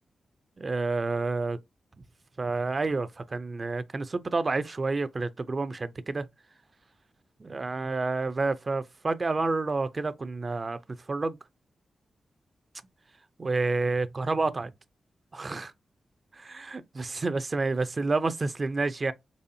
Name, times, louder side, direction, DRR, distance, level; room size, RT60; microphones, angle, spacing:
voice 1, 0.6-1.6 2.4-6.3 7.4-10.8 11.1-11.4 13.4-14.7 15.3-15.7 16.3-19.1, right 3 dB, 40° right, 0.4 m, -29 dB
4.1 x 3.1 x 2.6 m
cardioid pair, 65°, 0 cm